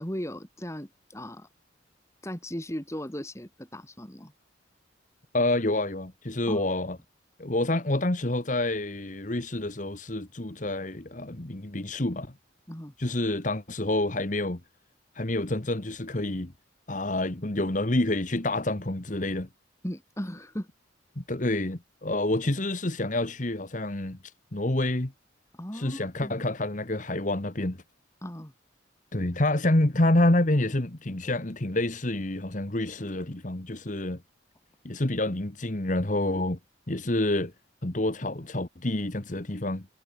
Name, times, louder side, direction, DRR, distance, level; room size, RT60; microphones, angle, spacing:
voice 1, 0.0-1.5 2.2-4.3 6.5-6.6 12.7-12.9 19.8-20.7 25.6-26.4 28.2-28.5, equal, 15° left, 2.8 m, -37 dB
voice 2, 5.3-7.0 7.4-12.3 13.0-14.6 15.1-16.5 16.9-19.5 21.2-24.2 24.5-25.1 25.7-27.8 29.1-34.2 34.8-36.6 36.9-37.5 37.8-39.9, left 1 dB, 40° left, 1.5 m, -28 dB
head